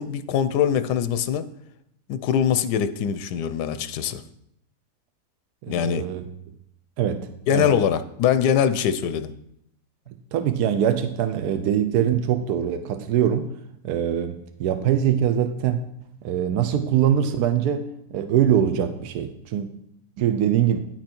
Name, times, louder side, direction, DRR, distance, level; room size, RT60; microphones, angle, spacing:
voice 1, 0.0-1.4 2.1-4.2 5.7-6.1 7.5-9.3, left 8 dB, 90° left, 12 dB, 1.2 m, -23 dB
voice 2, 5.6-6.3 7.0-7.7 10.3-13.5 13.8-15.8 16.2-17.8 18.1-19.7 20.2-20.8, right 9 dB, 80° right, 8 dB, 1.1 m, -23 dB
10.0 x 6.1 x 4.4 m, 0.76 s
omnidirectional pair, 1.7 m